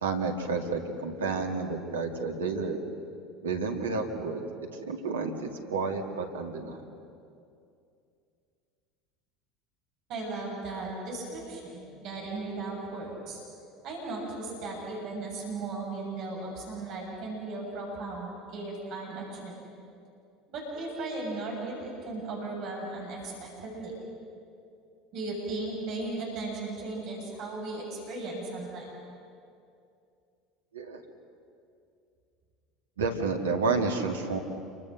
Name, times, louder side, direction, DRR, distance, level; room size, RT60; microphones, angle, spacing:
voice 1, 0.0-2.8 3.4-4.4 4.9-6.8 30.7-31.0 33.0-34.4, right 4 dB, 80° right, 3 dB, 2.3 m, -30 dB
voice 2, 10.1-13.4 13.8-19.7 20.5-23.9 25.1-28.9, right 2 dB, 55° right, -2 dB, 7.3 m, -36 dB
28.5 x 24.5 x 6.6 m, 2.5 s
figure-of-eight pair, 70°, 0 cm